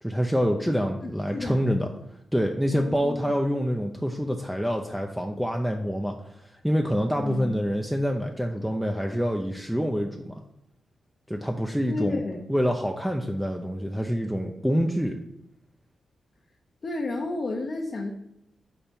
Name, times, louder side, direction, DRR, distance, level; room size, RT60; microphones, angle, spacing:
voice 1, 0.0-1.9 2.3-10.4 11.3-12.2 12.5-15.2, equal, 5° right, 2 dB, 0.6 m, -26 dB
voice 2, 1.0-1.7 2.7-3.3 7.2-7.5 11.9-12.5 16.8-18.1, left 3 dB, 55° left, 0 dB, 0.8 m, -32 dB
4.3 x 4.3 x 5.2 m, 0.83 s
supercardioid pair, 50°, 0 cm